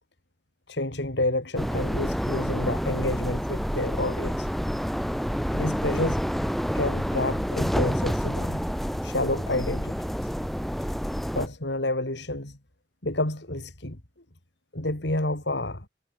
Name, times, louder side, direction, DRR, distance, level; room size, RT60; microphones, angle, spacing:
voice 1, 0.7-4.5 5.5-6.2 6.7-8.6 9.0-10.0 10.2-10.3 11.4-12.6 13.0-14.0 14.7-15.9, left 2 dB, 65° left, 4.1 m, -29 dB
sound 1, 1.6-11.5, equal, ahead, 3.9 m, -28 dB
head